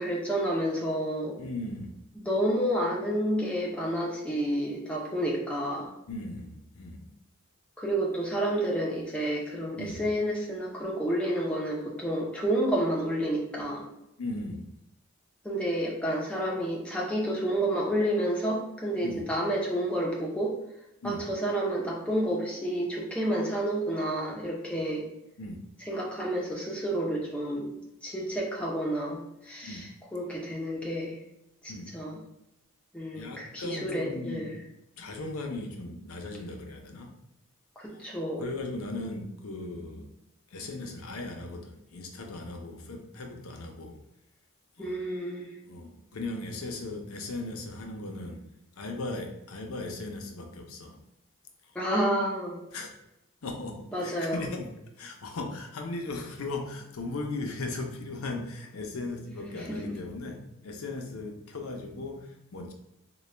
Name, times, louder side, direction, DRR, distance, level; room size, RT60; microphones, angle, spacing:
voice 1, 0.0-1.4 2.1-5.9 7.8-13.9 15.4-20.6 21.0-25.1 25.8-27.7 28.0-31.2 31.6-32.2 32.9-34.6 37.8-38.5 44.8-45.6 51.7-52.6 53.9-54.5 59.5-59.9, right 1 dB, 5° left, -4 dB, 0.6 m, -30 dB
voice 2, 1.4-2.0 6.1-7.1 9.8-10.0 14.2-14.7 19.0-19.2 21.0-21.2 25.4-25.6 29.6-29.8 31.7-31.9 33.1-34.5 35.0-37.1 37.9-38.1 38.4-40.1 40.5-44.0 44.8-44.9 45.7-48.4 48.8-51.0 52.7-52.9 53.4-54.7 55.0-62.7, left 2 dB, 85° left, 3 dB, 0.6 m, -37 dB
3.9 x 2.2 x 3.2 m, 0.87 s
head